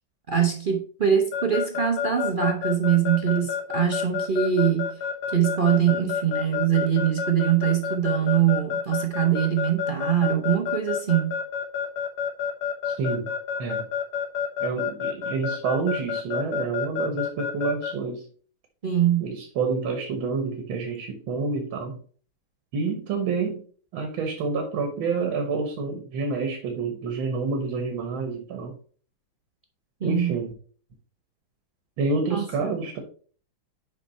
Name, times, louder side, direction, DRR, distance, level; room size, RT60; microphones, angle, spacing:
voice 1, 0.3-5.0 5.3-11.4 18.8-19.2 30.0-30.4 32.3-32.7, right 9 dB, 50° right, 0.6 m, -23 dB
Keyboard (musical) / Alarm, 1.3-17.9, left 8 dB, 85° left, 2.0 m, -28 dB
voice 2, 12.8-13.3 13.6-13.9 14.6-18.2 19.2-22.0 22.7-23.6 23.9-28.7 30.0-30.5 32.0-33.0, right 4 dB, 90° right, 2.0 m, -28 dB
6.6 x 5.4 x 4.2 m
omnidirectional pair, 2.1 m